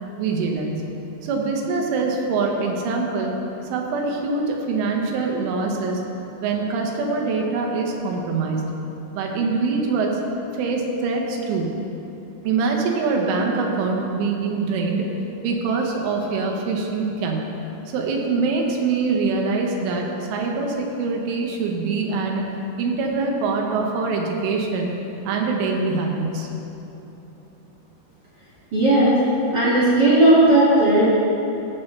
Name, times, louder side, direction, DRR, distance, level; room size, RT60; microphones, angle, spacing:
voice 1, 0.2-0.8 1.2-3.3 3.7-6.0 6.4-8.6 9.1-10.1 10.5-11.7 12.4-15.1 15.4-17.5 17.9-22.4 22.8-24.9 25.3-26.5, right 4 dB, 80° right, 0 dB, 3.6 m, -24 dB
voice 2, 28.7-29.2 29.5-31.1, right 1 dB, 45° right, -9 dB, 1.3 m, -15 dB
15.5 x 8.5 x 3.3 m, 3.0 s
omnidirectional pair, 5.6 m